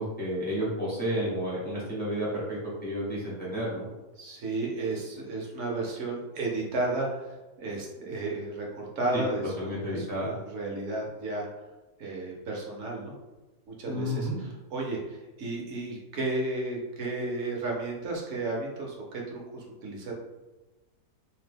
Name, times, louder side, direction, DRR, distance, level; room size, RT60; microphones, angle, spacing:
voice 1, 0.0-3.9 9.1-9.2 9.6-10.3 13.9-14.4, equal, 10° left, -9 dB, 0.4 m, -31 dB
voice 2, 4.2-11.5 12.0-13.1 13.7-20.1, right 2 dB, 60° right, -1 dB, 0.8 m, -33 dB
2.7 x 2.1 x 3.3 m, 1.1 s
omnidirectional pair, 1.7 m